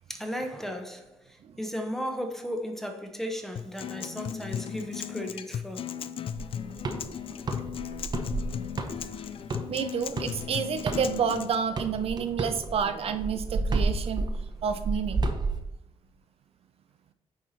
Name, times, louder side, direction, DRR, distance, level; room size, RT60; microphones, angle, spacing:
voice 1, 0.1-5.9, equal, 5° left, 0.9 m, -35 dB
Acoustic guitar, 3.6-11.5, left 8 dB, 55° left, 0.4 m, -36 dB
sound 1, 6.3-11.4 11.8-15.6, right 3 dB, 40° right, 0.8 m, -31 dB
voice 2, 9.7-14.3 14.6-15.2, right 7 dB, 60° right, 0.5 m, -29 dB
9.1 x 4.7 x 4.1 m
wide cardioid pair, 140°, 11 cm